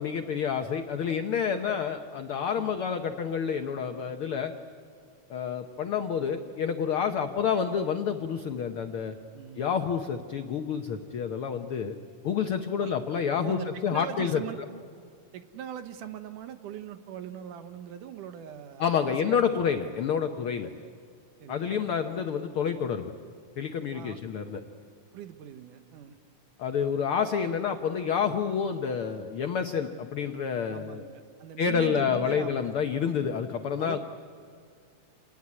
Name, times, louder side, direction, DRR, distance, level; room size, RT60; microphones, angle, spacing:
voice 1, 0.0-4.5 5.3-9.1 9.6-11.9 12.2-14.4 18.8-20.7 21.5-23.1 23.6-24.6 26.6-31.0 31.6-34.0, left 7 dB, 80° left, 6 dB, 1.2 m, -29 dB
voice 2, 9.3-9.8 12.8-12.9 13.4-14.6 15.3-19.6 21.4-21.9 23.9-24.2 25.1-26.2 30.7-32.5 33.8-34.0, right 10 dB, 70° right, 9 dB, 2.5 m, -41 dB
28.0 x 19.0 x 9.7 m, 2.3 s
omnidirectional pair, 3.9 m